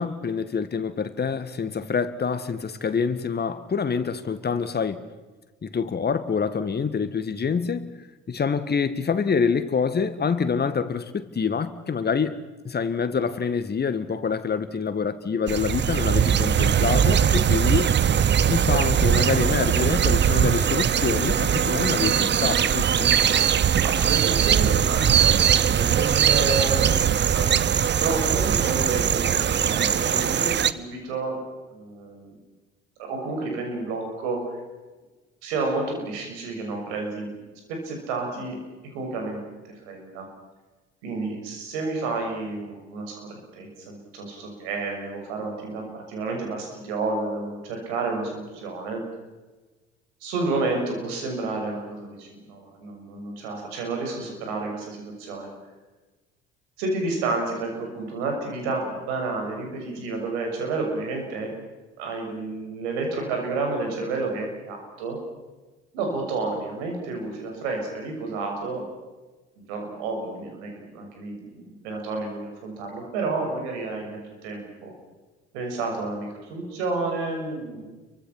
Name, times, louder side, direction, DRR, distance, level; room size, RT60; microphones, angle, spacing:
voice 1, 0.0-5.0 5.6-7.9 8.3-12.4 12.6-17.9 18.5-23.2, left 6 dB, 30° left, 12 dB, 1.9 m, -26 dB
sound 1, 15.5-30.7, right 8 dB, 30° right, 0.9 m, -21 dB
voice 2, 23.5-27.0 27.3-27.5 27.7-31.4 31.7-32.4 33.0-34.6 35.4-38.6 38.9-39.4 39.6-40.3 41.0-49.0 50.2-55.5 56.8-61.5 62.0-65.2 65.9-68.8 69.6-74.9 75.5-77.8, right 3 dB, 65° right, 2 dB, 6.5 m, -30 dB
29.5 x 24.0 x 6.0 m, 1.2 s
figure-of-eight pair, 55°, 35 cm